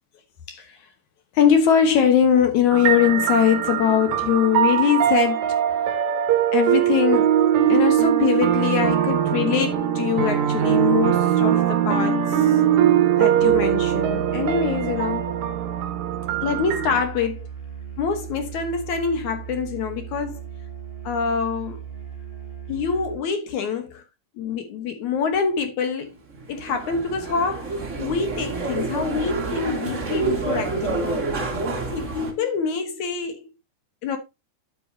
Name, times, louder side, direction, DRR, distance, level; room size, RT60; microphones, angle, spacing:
voice 1, 0.5-0.8 1.3-5.4 5.9-6.0 6.5-7.4 7.7-12.6 13.2-15.3 16.4-17.5 18.0-20.4 21.0-21.8 22.7-24.0 24.4-26.2 26.5-31.4 31.9-33.4 34.0-34.2, left 7 dB, 65° left, 2.0 m, -23 dB
sound 1, 2.7-17.0, right 10 dB, 65° right, 2.0 m, -21 dB
Musical instrument, 13.3-23.3, right 8 dB, 35° left, 0.9 m, -37 dB
sound 2, 26.3-32.3, right 3 dB, 50° right, 0.8 m, -28 dB
10.0 x 7.7 x 2.7 m
omnidirectional pair, 4.8 m